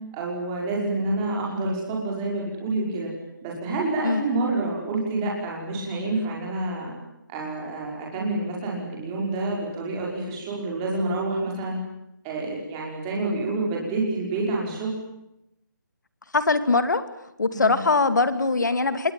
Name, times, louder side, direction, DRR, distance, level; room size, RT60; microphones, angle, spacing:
voice 1, 0.1-3.1 3.4-6.9 7.3-11.8 12.2-14.9 17.5-17.8, right 2 dB, 10° right, -3 dB, 5.6 m, -28 dB
voice 2, 16.3-17.0 17.4-19.1, left 3 dB, 60° left, 11 dB, 2.7 m, -22 dB
26.5 x 22.5 x 9.1 m, 0.85 s
hypercardioid pair, 180°, 11 cm